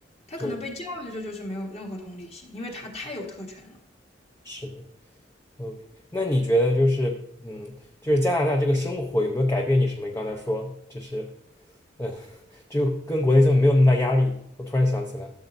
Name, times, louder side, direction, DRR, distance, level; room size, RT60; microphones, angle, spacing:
voice 1, 0.3-3.8, left 1 dB, 35° left, 1.7 m, -36 dB
voice 2, 4.4-4.8 5.6-5.8 6.1-7.7 8.0-11.3 12.0-12.4 12.7-15.3, left 1 dB, 15° left, 0.6 m, -23 dB
13.0 x 7.2 x 2.6 m
head